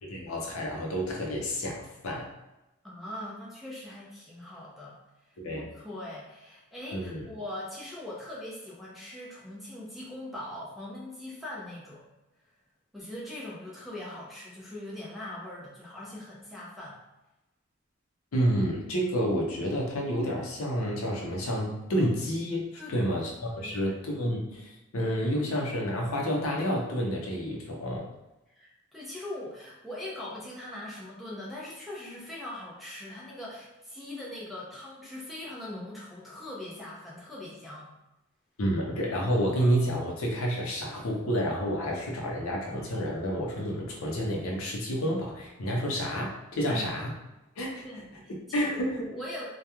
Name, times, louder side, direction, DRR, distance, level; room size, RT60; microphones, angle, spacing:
voice 1, 0.1-2.3 5.4-5.7 6.9-7.2 18.3-28.0 38.6-47.1 47.6-47.9 48.5-49.1, equal, 75° left, -1 dB, 0.6 m, -29 dB
voice 2, 2.8-5.0 5.6-12.1 12.9-17.0 22.8-23.2 23.6-24.0 28.5-37.9 46.7-46.9 47.8-48.8 49.0-49.5, left 1 dB, ahead, -6 dB, 0.5 m, -41 dB
2.9 x 2.2 x 2.3 m, 0.98 s
head